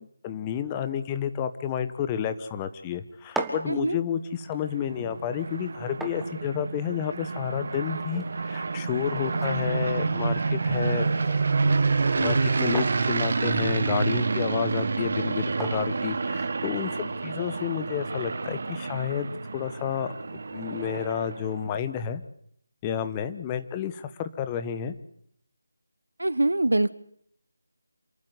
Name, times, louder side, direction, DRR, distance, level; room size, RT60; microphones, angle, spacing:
voice 1, 0.2-11.1 12.1-20.1 20.5-22.2 22.8-24.9, left 8 dB, 15° left, 10 dB, 1.2 m, -30 dB
sound 1, 3.1-17.0, right 2 dB, ahead, 1.6 m, -42 dB
sound 2, 4.5-21.6, right 4 dB, 50° right, 1.7 m, -28 dB
voice 2, 26.2-26.9, right 2 dB, 75° right, 18 dB, 1.1 m, -23 dB
28.0 x 12.0 x 9.4 m, 0.68 s
figure-of-eight pair, 160°, 0 cm